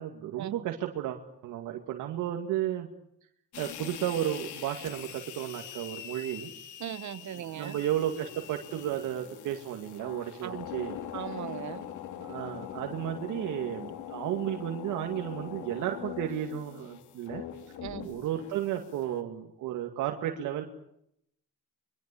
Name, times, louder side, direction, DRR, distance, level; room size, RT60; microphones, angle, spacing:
voice 1, 0.0-2.9 3.6-6.5 7.3-11.0 12.2-17.5 18.0-20.6, right 11 dB, 90° right, 2.3 m, -33 dB
sound 1, 3.5-19.2, left 11 dB, 80° left, 2.6 m, -43 dB
voice 2, 6.8-7.8 10.4-10.6 11.1-11.9 17.8-18.2, right 11 dB, 70° right, 1.4 m, -38 dB
24.5 x 23.5 x 8.5 m
cardioid pair, 90°, 30 cm